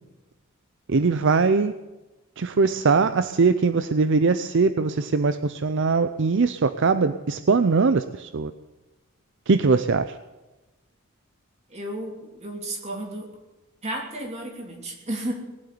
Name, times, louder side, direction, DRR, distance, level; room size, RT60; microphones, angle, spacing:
voice 1, 0.9-1.7 2.4-8.5 9.5-10.2, right 4 dB, 60° right, 11 dB, 0.5 m, -21 dB
voice 2, 11.7-13.3 13.8-15.3, right 1 dB, 30° right, 0 dB, 3.0 m, -33 dB
19.5 x 7.9 x 9.5 m, 1.1 s
head